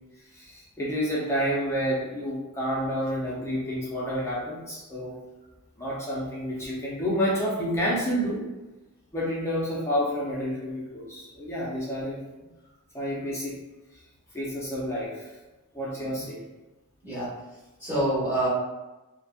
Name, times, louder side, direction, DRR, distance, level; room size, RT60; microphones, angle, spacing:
voice 1, 0.3-5.2 5.8-8.4 9.1-12.2 12.9-13.6 14.3-15.3 15.7-16.4, equal, 10° left, -7 dB, 0.5 m, -29 dB
voice 2, 17.8-18.5, right 1 dB, 10° right, -9 dB, 1.2 m, -27 dB
2.8 x 2.1 x 2.3 m, 1.1 s
head